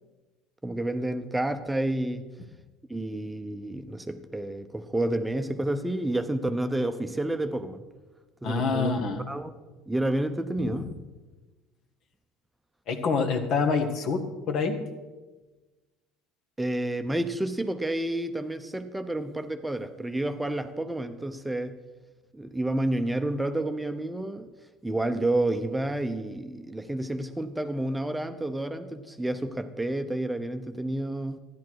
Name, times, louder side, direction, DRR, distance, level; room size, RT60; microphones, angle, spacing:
voice 1, 0.6-2.3 2.9-7.8 8.4-8.9 9.3-9.5 9.9-10.9 16.6-21.8 22.3-24.5 24.8-31.4, right 1 dB, 10° right, 8 dB, 0.8 m, -30 dB
voice 2, 8.4-9.2 10.6-10.8 12.9-14.8, left 4 dB, 60° left, 5 dB, 1.6 m, -26 dB
13.0 x 10.5 x 4.7 m, 1.2 s
hypercardioid pair, 75°, 0 cm